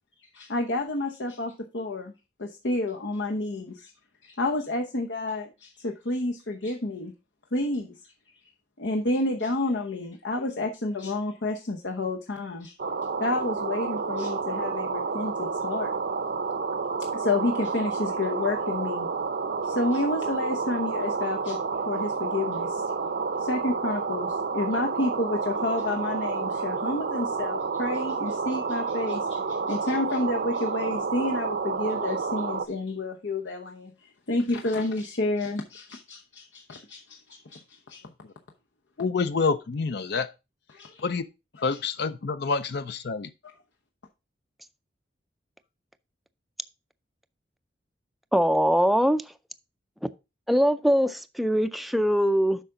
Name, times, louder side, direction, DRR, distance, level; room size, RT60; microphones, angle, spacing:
voice 1, 0.3-2.1 2.4-3.9 4.2-7.1 7.5-8.0 8.8-12.7 13.2-15.9 17.0-19.1 19.6-21.6 21.9-22.8 23.4-38.0 40.7-41.0, left 2 dB, 85° left, 0.9 m, -30 dB
sound 1, 12.8-32.7, right 4 dB, 60° right, 0.6 m, -30 dB
voice 2, 39.0-40.3 41.0-41.2 41.6-43.3, left 4 dB, 65° left, 0.5 m, -27 dB
voice 3, 48.3-49.2 50.5-52.6, equal, ahead, 0.4 m, -22 dB
8.2 x 5.8 x 3.8 m
head